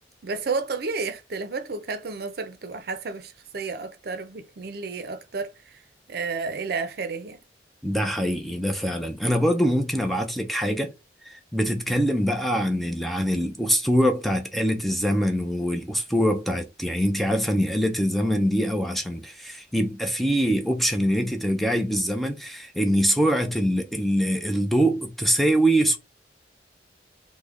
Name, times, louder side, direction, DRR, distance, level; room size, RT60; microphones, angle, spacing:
voice 1, 0.2-5.8 6.1-7.4, right 4 dB, 60° right, 0.5 m, -31 dB
voice 2, 7.8-10.9 11.2-26.0, equal, ahead, 0.4 m, -24 dB
3.1 x 2.1 x 3.5 m
head